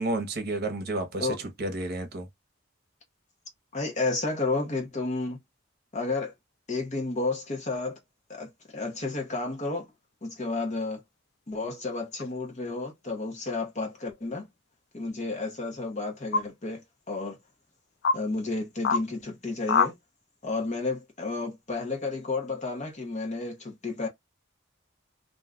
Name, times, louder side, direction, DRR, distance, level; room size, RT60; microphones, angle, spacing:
voice 1, 0.0-2.3, right 2 dB, 55° right, 0.9 m, -31 dB
voice 2, 3.7-5.4 5.9-6.3 6.7-8.0 8.3-9.9 10.2-11.0 11.5-14.5 14.9-17.4 18.1-20.0 20.4-24.1, left 3 dB, 40° left, 0.9 m, -31 dB
sound 1, 12.2-12.3 13.8-14.2 16.3-16.4 17.3-17.4 18.0-18.2 18.8-19.0 19.7-19.9, left 5 dB, 55° left, 0.4 m, -25 dB
2.6 x 2.3 x 3.7 m
head